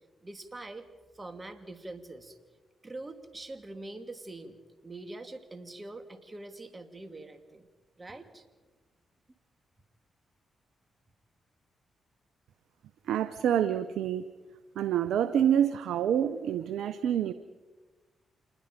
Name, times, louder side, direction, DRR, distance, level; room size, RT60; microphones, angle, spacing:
voice 1, 0.2-0.9 1.1-2.4 2.8-4.6 4.8-7.7 8.0-8.5, right 2 dB, 30° right, 8 dB, 2.6 m, -44 dB
voice 2, 13.1-14.3 14.8-17.3, right 9 dB, 75° right, 13 dB, 0.7 m, -27 dB
27.5 x 20.5 x 5.1 m, 1.3 s
supercardioid pair, 45°, 0 cm